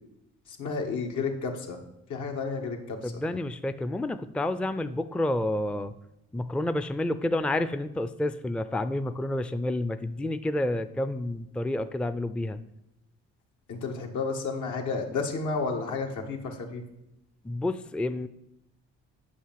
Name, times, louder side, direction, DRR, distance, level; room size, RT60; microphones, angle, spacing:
voice 1, 0.6-1.8 2.1-3.0 13.7-16.8, left 4 dB, 75° left, 2 dB, 1.9 m, -31 dB
voice 2, 3.0-5.9 6.3-12.6 17.4-18.3, left 1 dB, 5° left, 12 dB, 0.4 m, -29 dB
8.6 x 5.6 x 7.5 m, 0.86 s
cardioid pair, 90°, 30 cm